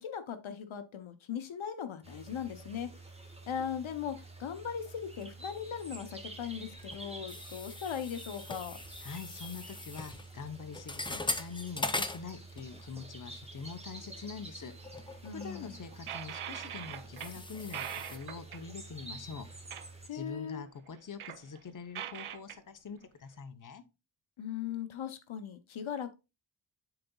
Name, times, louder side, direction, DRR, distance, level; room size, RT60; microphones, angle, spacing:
voice 1, 0.0-2.9 3.5-8.8 15.2-15.8 20.1-20.6 24.4-26.2, left 8 dB, 70° left, 0.8 m, -39 dB
sound 1, 2.0-20.1, right 2 dB, 10° right, 1.4 m, -49 dB
sound 2, 5.2-6.1 6.4-13.0 13.3-13.6 14.2-14.3 14.8-18.2, left 2 dB, 10° left, 0.5 m, -41 dB
voice 2, 9.0-14.7 15.3-19.5 20.1-23.8, left 5 dB, 40° left, 0.8 m, -44 dB
sound 3, 15.6-17.3 17.6-18.7 19.7-19.9 20.2-20.3 20.9-22.6, right 10 dB, 85° right, 0.7 m, -42 dB
11.5 x 4.0 x 2.3 m
wide cardioid pair, 105°, 49 cm